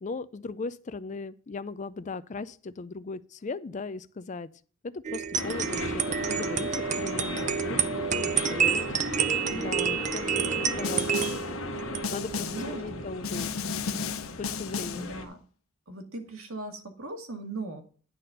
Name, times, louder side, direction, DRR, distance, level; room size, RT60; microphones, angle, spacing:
voice 1, 0.0-4.5 4.8-8.9 9.5-11.1 12.1-13.9 14.4-15.1, left 3 dB, 35° left, 0.4 m, -38 dB
sound 1, 5.0-13.3, right 7 dB, 35° right, 0.5 m, -29 dB
sound 2, 5.3-15.2, left 3 dB, 70° left, 1.1 m, -37 dB
voice 2, 8.7-9.7 10.4-10.7 12.4-12.8 14.9-15.4 15.9-17.8, right 2 dB, 80° right, 1.8 m, -39 dB
Snare drum, 10.8-11.5 12.0-12.7 13.2-15.1, left 6 dB, 85° left, 0.7 m, -34 dB
10.0 x 4.2 x 6.6 m
head